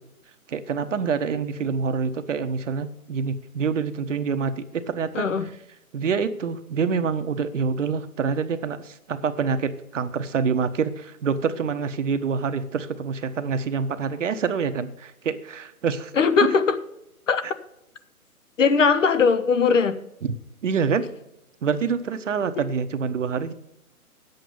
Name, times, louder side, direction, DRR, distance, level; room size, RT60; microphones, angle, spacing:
voice 1, 0.5-5.3 5.9-16.1 20.6-21.0 21.6-23.5, right 6 dB, 55° right, 10 dB, 1.0 m, -26 dB
voice 2, 5.1-5.5 16.1-16.8 17.3-17.4 18.6-20.0, left 5 dB, 60° left, 12 dB, 1.0 m, -19 dB
9.9 x 8.0 x 5.4 m, 0.83 s
hypercardioid pair, 155°, 43 cm